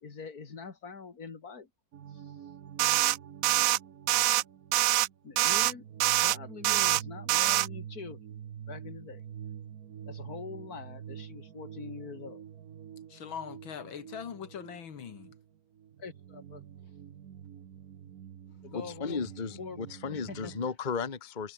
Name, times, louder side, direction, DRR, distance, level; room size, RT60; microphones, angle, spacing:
voice 1, 0.0-1.7 2.1-2.2 5.2-5.9 6.2-8.2 8.7-9.2 10.1-12.4 16.0-16.6 18.6-19.2 19.6-19.8 20.1-20.5, left 5 dB, 50° left, 2.9 m, -43 dB
sound 1, 1.9-20.7, right 9 dB, 55° right, 1.3 m, -47 dB
sound 2, 2.8-3.2 3.4-3.8 4.1-4.4 4.7-5.1 5.4-5.7 6.0-6.4 6.6-7.0 7.3-7.7, right 16 dB, 80° right, 1.4 m, -24 dB
voice 2, 13.1-15.3, left 8 dB, 85° left, 2.4 m, -41 dB
voice 3, 18.7-21.5, left 5 dB, 25° left, 1.4 m, -35 dB
omnidirectional pair, 2.1 m